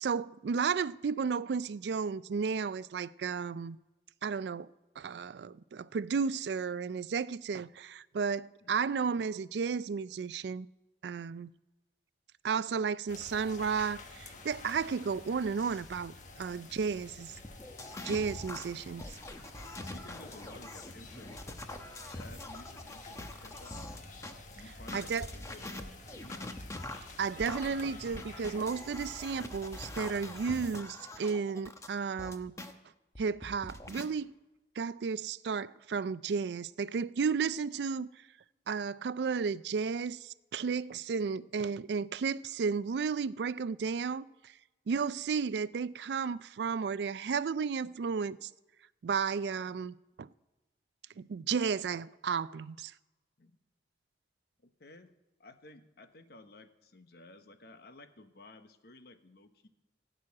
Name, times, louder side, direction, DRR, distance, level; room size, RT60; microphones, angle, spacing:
voice 1, 0.0-3.8 4.2-4.7 5.0-10.7 11.0-11.5 12.4-17.3 18.0-19.2 24.9-25.3 27.2-32.6 33.2-34.3 34.8-38.1 38.7-44.5 44.9-48.5 49.0-50.3 51.2-52.9, right 5 dB, 70° right, 0.4 m, -33 dB
sound 1, 13.1-30.7, left 3 dB, 45° left, 1.3 m, -50 dB
sound 2, 17.4-24.3 24.8-32.7 33.2-34.1, left 1 dB, 15° left, 0.9 m, -44 dB
voice 2, 19.6-21.7 22.1-23.8 24.5-26.5 53.4-53.6 54.6-55.1 55.4-59.7, left 2 dB, 60° left, 1.0 m, -54 dB
16.5 x 6.2 x 8.5 m
head